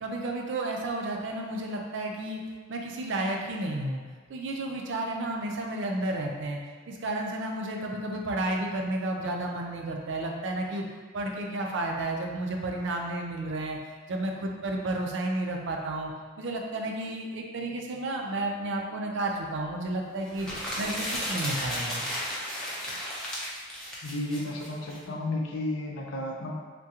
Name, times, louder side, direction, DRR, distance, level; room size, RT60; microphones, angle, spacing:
voice 1, 0.0-2.4 2.7-4.0 4.3-6.6 6.9-10.8 11.1-13.8 14.1-16.1 16.4-20.5 20.8-22.0, right 2 dB, 65° right, 1 dB, 0.4 m, -32 dB
sound 1, 20.3-25.0, equal, 5° left, 0.6 m, -34 dB
voice 2, 24.0-26.5, left 1 dB, 90° left, -1 dB, 0.5 m, -32 dB
3.5 x 2.2 x 2.8 m, 1.5 s
head